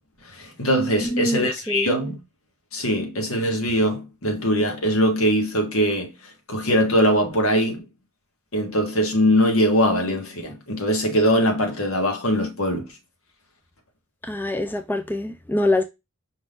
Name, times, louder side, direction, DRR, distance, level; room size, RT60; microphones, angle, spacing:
voice 1, 0.2-2.2 2.7-7.8 8.5-13.0, equal, 70° left, 1.5 m, -22 dB
voice 2, 1.0-1.9 14.2-15.8, left 1 dB, 10° left, 0.3 m, -24 dB
4.9 x 3.6 x 2.5 m
head